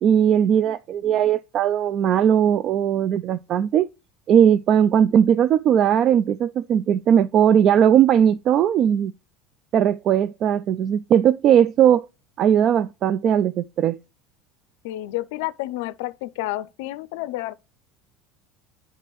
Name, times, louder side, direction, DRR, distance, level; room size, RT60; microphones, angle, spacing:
voice 1, 0.0-3.9 4.3-9.1 9.7-12.1 12.4-14.0, right 9 dB, 50° right, 0.3 m, -18 dB
voice 2, 14.8-17.5, left 16 dB, 80° left, 0.4 m, -30 dB
9.9 x 3.3 x 3.0 m
supercardioid pair, 105°, 0 cm